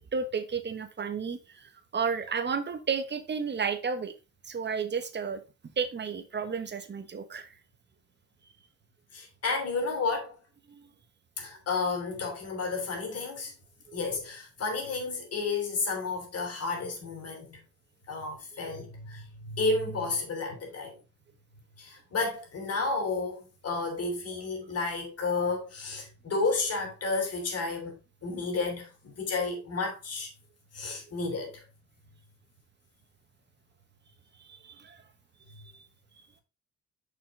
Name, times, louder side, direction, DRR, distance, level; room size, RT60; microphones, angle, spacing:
voice 1, 0.0-4.1 4.5-5.4 5.8-7.5 10.7-10.9 13.9-14.0 30.8-31.0 34.5-35.0 35.7-35.8, right 5 dB, 35° right, 1.2 m, -32 dB
voice 2, 9.1-10.3 11.4-13.5 13.9-17.6 18.1-21.0 21.8-30.3 30.7-31.6, left 3 dB, 55° left, 3.3 m, -32 dB
6.4 x 5.9 x 3.8 m
cardioid pair, 90°, 30 cm